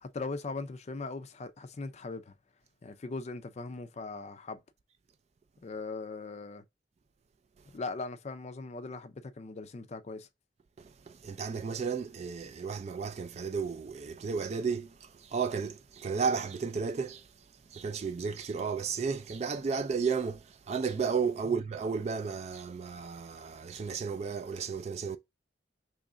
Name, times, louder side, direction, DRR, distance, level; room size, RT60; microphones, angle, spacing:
voice 1, 0.0-2.3 2.8-4.6 5.6-6.6 7.7-10.3, left 3 dB, 40° left, 0.4 m, -39 dB
voice 2, 10.8-17.3 17.7-25.2, right 5 dB, 35° right, 0.3 m, -33 dB
3.1 x 2.4 x 3.7 m
head